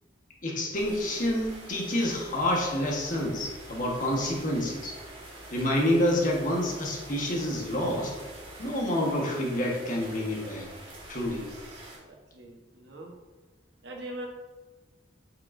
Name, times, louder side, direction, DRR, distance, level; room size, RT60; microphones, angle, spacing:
voice 1, 0.4-4.9 5.5-8.1 8.6-10.7 11.1-11.5, left 1 dB, 45° left, -1 dB, 1.5 m, -28 dB
sound 1, 0.7-12.0, right 1 dB, 30° right, 1.9 m, -46 dB
voice 2, 11.5-13.2 13.8-14.3, right 1 dB, 65° right, 0 dB, 1.3 m, -43 dB
8.4 x 6.5 x 2.7 m, 1.3 s
head